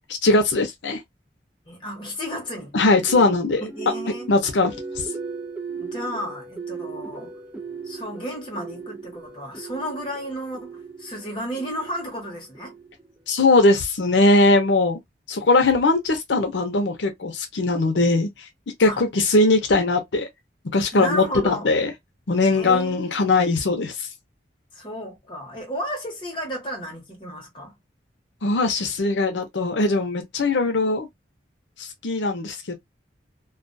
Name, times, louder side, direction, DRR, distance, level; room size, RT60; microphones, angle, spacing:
voice 1, 0.2-1.0 2.7-3.6 4.3-4.7 13.3-15.0 15.3-18.3 18.8-20.3 20.7-21.9 22.3-24.1 28.4-31.1 31.8-32.7, left 2 dB, 80° left, 0.6 m, -20 dB
voice 2, 1.7-2.8 3.6-4.3 5.8-7.3 7.8-12.8 18.9-19.0 20.9-21.7 22.5-23.5 24.7-27.7, equal, 25° left, 1.0 m, -33 dB
sound 1, 3.1-13.2, right 4 dB, 10° right, 0.5 m, -37 dB
2.3 x 2.2 x 2.6 m
head